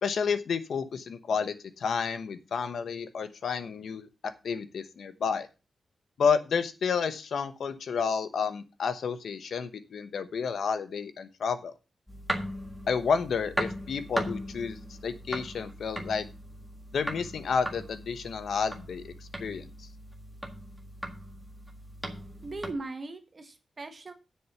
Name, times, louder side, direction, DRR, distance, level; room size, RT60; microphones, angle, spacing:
voice 1, 0.0-4.1 4.4-5.5 6.2-11.7 12.9-16.2 16.9-19.1 19.4-19.9, left 6 dB, 70° left, 11 dB, 1.0 m, -30 dB
sound 1, 12.1-22.7, right 1 dB, ahead, 1.8 m, -38 dB
voice 2, 22.4-24.1, right 2 dB, 30° right, 6 dB, 1.6 m, -39 dB
7.7 x 6.6 x 6.9 m, 0.30 s
wide cardioid pair, 160°, 0 cm